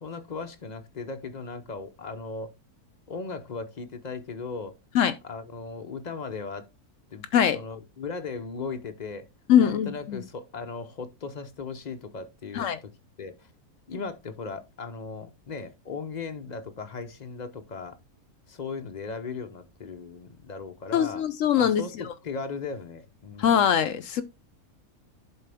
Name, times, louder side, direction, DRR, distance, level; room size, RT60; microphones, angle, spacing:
voice 1, 0.0-2.5 3.1-4.8 5.2-6.7 7.1-7.3 7.5-9.3 9.6-12.9 13.2-13.5 13.9-18.0 18.5-21.2 21.6-23.6, left 4 dB, 40° left, 0.6 m, -37 dB
voice 2, 9.5-10.2 12.5-12.8 20.9-21.8 23.4-24.2, left 9 dB, 65° left, 0.9 m, -22 dB
11.0 x 3.8 x 3.4 m
omnidirectional pair, 1.6 m